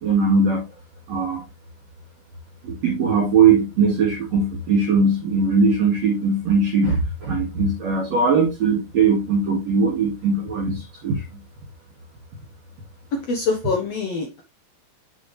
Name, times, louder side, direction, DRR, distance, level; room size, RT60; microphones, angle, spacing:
voice 1, 0.0-0.6 1.1-1.4 2.6-11.2, right 4 dB, 50° right, -1 dB, 2.8 m, -20 dB
voice 2, 13.1-14.4, left 4 dB, 70° left, 3 dB, 1.5 m, -25 dB
7.6 x 6.7 x 3.2 m, 0.22 s
omnidirectional pair, 4.6 m